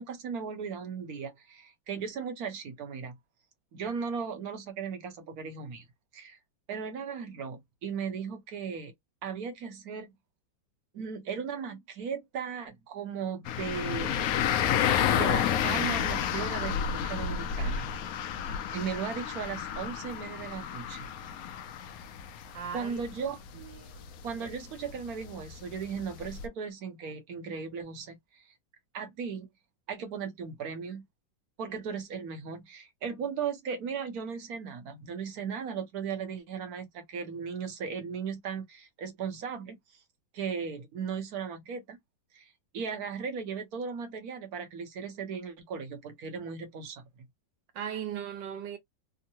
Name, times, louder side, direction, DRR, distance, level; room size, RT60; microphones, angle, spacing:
voice 1, 0.0-3.2 3.7-5.9 6.1-6.4 6.7-8.9 9.2-10.1 10.9-14.2 15.1-18.0 18.7-21.1 22.7-23.4 24.2-28.5 28.9-29.5 29.9-31.0 31.6-40.0 40.3-42.0 42.3-47.0, right 6 dB, 60° right, 1.2 m, -37 dB
sound 1, 13.5-26.5, left 8 dB, 75° left, 0.8 m, -31 dB
voice 2, 22.5-23.0 23.5-24.1 47.7-48.8, right 8 dB, 75° right, 1.6 m, -38 dB
3.6 x 2.0 x 2.8 m
omnidirectional pair, 2.0 m